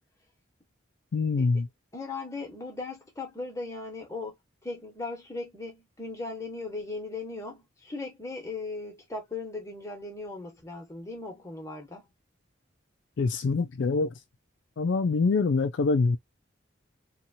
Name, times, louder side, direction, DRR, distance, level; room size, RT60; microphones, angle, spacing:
voice 1, 1.1-1.7 13.2-14.2 14.8-16.2, left 4 dB, 70° left, 0.4 m, -25 dB
voice 2, 1.9-4.3 4.6-12.1, left 3 dB, 15° left, 1.1 m, -38 dB
2.9 x 2.3 x 2.6 m
head